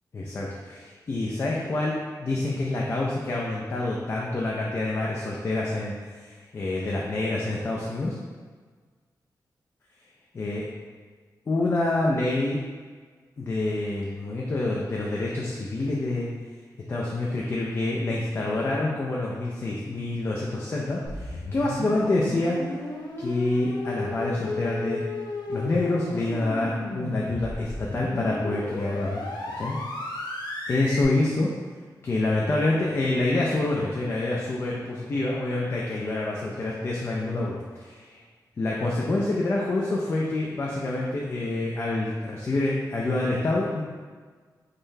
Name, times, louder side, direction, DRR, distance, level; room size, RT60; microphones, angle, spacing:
voice 1, 0.1-8.2 10.3-10.6 11.5-12.6 13.4-16.3 16.9-22.6 23.2-25.0 25.5-29.8 30.7-31.5 32.0-38.2 38.6-43.8, left 2 dB, 35° left, -4 dB, 0.4 m, -27 dB
sound 1, 21.0-31.0, left 2 dB, 85° left, 0.5 m, -34 dB
3.7 x 3.2 x 2.6 m, 1.5 s
wide cardioid pair, 175°, 7 cm